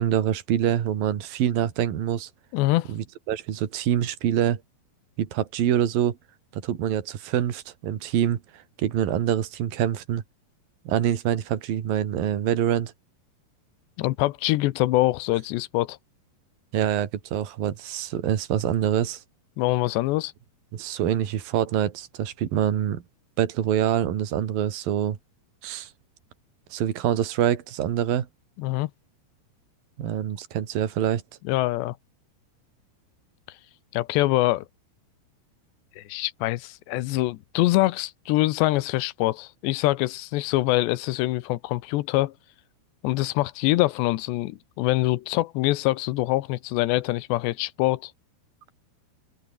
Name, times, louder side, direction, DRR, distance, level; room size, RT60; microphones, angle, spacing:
voice 1, 0.0-2.3 2.9-4.6 5.2-6.2 6.5-10.2 10.9-12.9 16.7-19.2 20.7-23.0 23.4-25.2 25.6-25.9 26.7-28.3 30.0-31.2, right 10 dB, 60° right, 3.8 m, -25 dB
voice 2, 2.5-2.9 14.0-16.0 19.6-20.3 28.6-28.9 31.4-32.0 33.9-34.7 36.0-42.3 43.0-48.1, left 18 dB, 85° left, 3.1 m, -24 dB
omnidirectional pair, 4.9 m